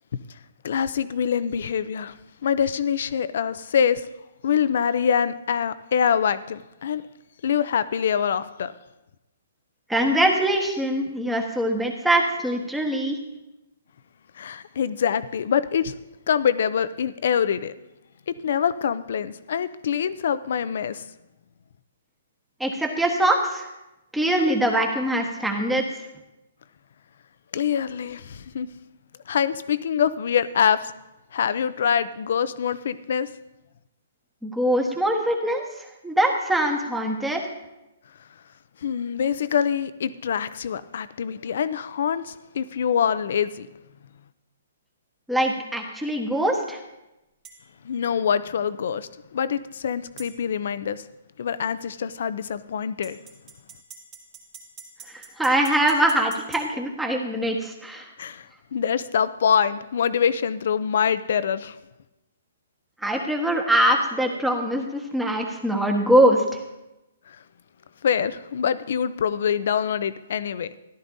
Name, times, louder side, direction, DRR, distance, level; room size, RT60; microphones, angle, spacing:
voice 1, 0.6-2.1 2.4-4.1 4.4-7.0 7.4-8.7 14.4-15.9 16.3-17.7 18.4-21.0 27.5-28.7 29.3-30.9 31.3-33.3 38.8-43.7 47.8-51.0 51.4-53.2 58.2-61.8 67.3-67.4 68.0-70.7, left 8 dB, 65° left, 15 dB, 0.6 m, -25 dB
voice 2, 9.9-13.2 22.6-23.7 24.1-26.0 34.4-37.4 45.3-46.8 55.1-58.1 63.0-66.4, right 1 dB, 5° right, 1 dB, 1.4 m, -23 dB
sound 1, 47.4-47.6 50.2-50.3 53.0-56.7, right 5 dB, 25° right, 2.3 m, -44 dB
14.0 x 11.5 x 2.7 m, 0.95 s
hypercardioid pair, 145°, 0 cm